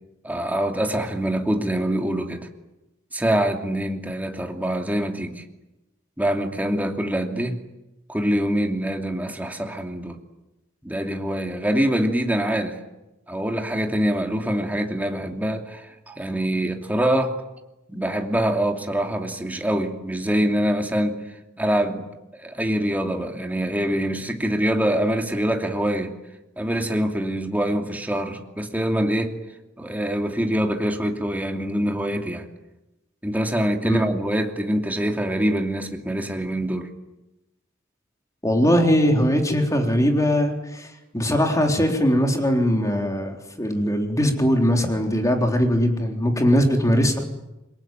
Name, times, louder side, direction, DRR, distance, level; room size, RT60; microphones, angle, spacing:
voice 1, 0.2-2.5 3.1-5.4 6.2-7.6 8.1-10.2 10.8-12.8 13.3-17.4 17.9-21.2 21.6-26.2 26.6-29.4 29.8-32.5 33.2-36.9, right 1 dB, 10° right, 2.7 m, -24 dB
voice 2, 38.4-40.9 41.1-47.2, equal, 15° left, 3.7 m, -20 dB
27.5 x 22.5 x 9.2 m
head